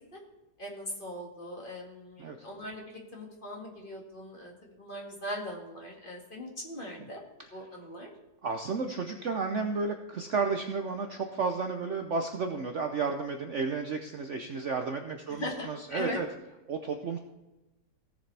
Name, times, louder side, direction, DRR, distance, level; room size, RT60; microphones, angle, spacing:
voice 1, 0.6-7.2 7.5-8.1 15.3-16.2, left 1 dB, 30° left, -1 dB, 2.1 m, -40 dB
voice 2, 8.4-16.3 16.7-17.2, right 4 dB, 55° right, 5 dB, 0.9 m, -32 dB
17.0 x 7.3 x 3.4 m, 1.1 s
omnidirectional pair, 1.9 m